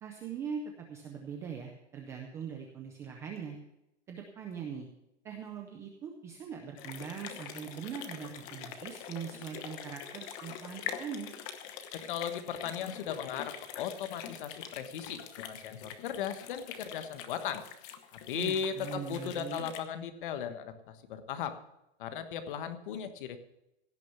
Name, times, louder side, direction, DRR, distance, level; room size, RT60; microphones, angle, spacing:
voice 1, 0.0-3.6 4.1-4.9 5.2-11.3 18.3-19.7, right 7 dB, 10° right, 2 dB, 0.4 m, -41 dB
sound 1, 6.8-19.8, left 9 dB, 30° left, 1.1 m, -44 dB
voice 2, 11.9-17.6 18.3-21.6 22.0-23.4, left 8 dB, 50° left, 9 dB, 1.4 m, -37 dB
16.5 x 6.5 x 7.0 m, 0.87 s
supercardioid pair, 170°, 33 cm